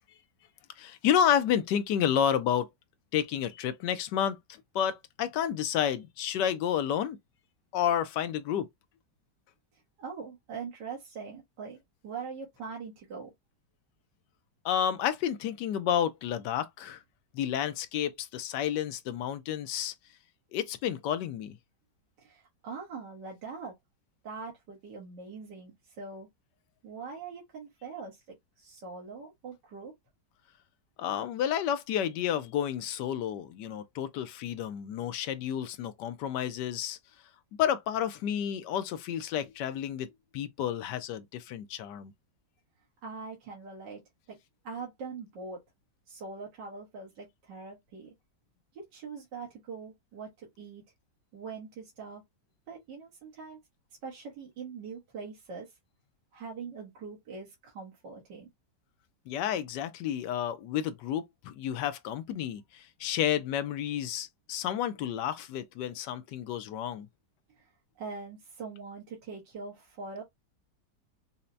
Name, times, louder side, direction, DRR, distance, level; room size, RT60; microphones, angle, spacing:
voice 1, 0.8-2.7 3.1-7.2 7.7-8.7 14.6-17.0 17.3-19.9 20.5-21.6 31.0-37.0 37.6-40.1 40.3-42.1 59.3-67.1, left 9 dB, 85° left, 1.2 m, -30 dB
voice 2, 10.0-11.8 12.0-13.3 22.2-23.7 24.2-26.3 26.8-28.2 28.6-29.9 43.0-44.0 44.3-44.4 44.6-45.6 46.1-48.1 48.7-50.8 51.3-52.2 52.7-53.6 54.0-55.7 56.3-58.5 67.6-67.7 68.0-70.2, right 5 dB, 85° right, 1.8 m, -42 dB
5.6 x 2.0 x 2.6 m
omnidirectional pair, 1.8 m